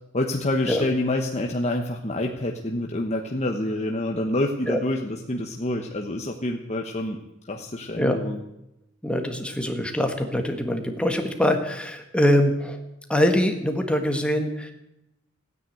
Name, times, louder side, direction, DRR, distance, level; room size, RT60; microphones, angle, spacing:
voice 1, 0.1-7.2 7.5-8.4, left 1 dB, 30° left, 2 dB, 1.2 m, -27 dB
voice 2, 9.0-12.8 13.1-14.7, equal, 5° left, 5 dB, 1.6 m, -23 dB
16.0 x 9.7 x 9.2 m, 0.88 s
head